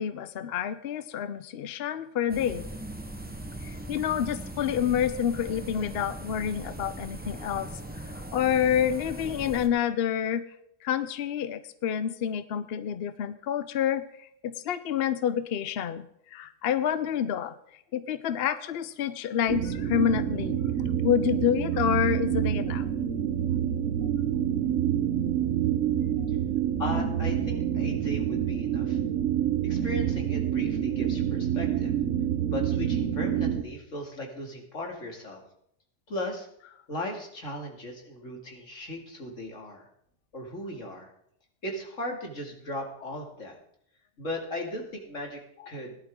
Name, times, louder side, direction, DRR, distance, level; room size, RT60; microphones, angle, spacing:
voice 1, 0.0-2.7 3.6-7.7 8.3-10.4 10.8-16.1 16.3-17.5 17.9-20.6 21.0-22.9, left 9 dB, 60° left, 12 dB, 0.8 m, -28 dB
sound 1, 2.3-9.7, right 1 dB, 10° right, 0.9 m, -39 dB
sound 2, 19.5-33.6, right 10 dB, 80° right, 1.2 m, -27 dB
voice 2, 26.8-29.0 29.6-31.9 32.4-35.4 36.1-36.5 36.9-39.9 40.3-41.1 41.6-43.6 44.2-45.4 45.7-46.0, left 1 dB, 90° left, 1 dB, 2.7 m, -37 dB
17.5 x 11.5 x 3.7 m, 0.71 s
omnidirectional pair, 1.3 m